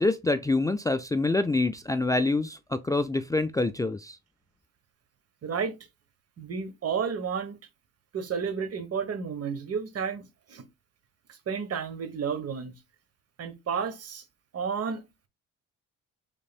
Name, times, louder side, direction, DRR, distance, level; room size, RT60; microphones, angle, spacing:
voice 1, 0.0-4.2, left 2 dB, 10° left, 0.4 m, -26 dB
voice 2, 5.4-5.8 6.4-7.6 8.1-10.6 11.3-12.7 13.4-14.2 14.5-15.0, right 6 dB, 55° right, 1.2 m, -32 dB
5.2 x 3.7 x 2.3 m
cardioid pair, 90°, 30 cm